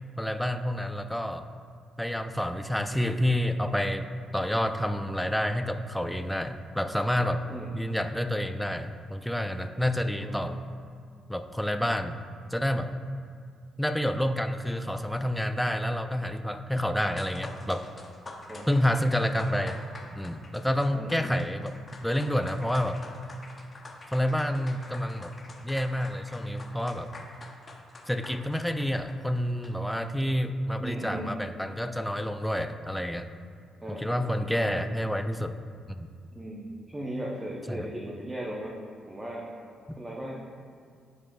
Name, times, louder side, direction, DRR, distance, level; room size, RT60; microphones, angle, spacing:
voice 1, 0.2-1.5 2.0-7.4 7.7-10.6 11.3-12.2 12.5-12.9 13.8-17.9 18.7-19.8 20.1-21.8 22.0-23.0 24.1-25.3 25.6-27.1 28.1-33.3 33.9-35.6 35.9-36.1 37.7-37.9 39.9-40.0, equal, 5° left, 8 dB, 0.3 m, -29 dB
voice 2, 9.9-10.4 18.5-18.8 20.9-21.3 30.8-31.4 33.8-34.2 34.6-34.8 36.3-38.8 39.1-39.5 40.0-40.4, right 1 dB, 15° right, -3 dB, 0.7 m, -37 dB
sound 1, 17.0-30.0, left 2 dB, 30° left, 0.7 m, -47 dB
9.8 x 4.8 x 2.3 m, 2.2 s
cardioid pair, 90°, 0 cm